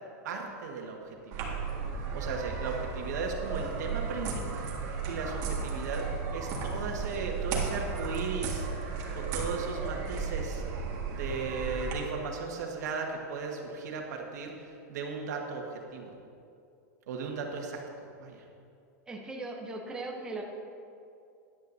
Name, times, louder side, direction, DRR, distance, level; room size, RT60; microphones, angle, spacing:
voice 1, 0.2-1.6 2.1-6.1 6.3-10.6 11.1-14.5 14.9-16.1 17.1-17.8 18.2-18.4, right 4 dB, 75° right, 1 dB, 1.6 m, -36 dB
sound 1, 1.3-11.9, right 5 dB, 40° right, 1.7 m, -34 dB
voice 2, 19.1-20.4, right 2 dB, 10° right, 0 dB, 0.7 m, -38 dB
13.0 x 10.5 x 2.7 m, 2.5 s
supercardioid pair, 150°, 9 cm